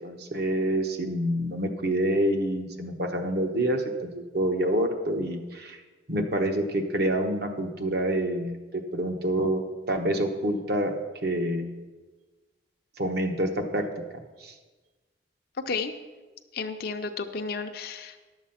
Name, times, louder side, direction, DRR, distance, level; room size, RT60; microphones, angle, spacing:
voice 1, 0.0-5.8 6.1-10.9 11.2-11.7 13.0-13.8 14.4-14.5, right 1 dB, 55° right, 4 dB, 1.1 m, -27 dB
voice 2, 16.5-18.2, left 4 dB, 55° left, 5 dB, 0.6 m, -32 dB
11.0 x 7.2 x 5.7 m, 1.3 s
head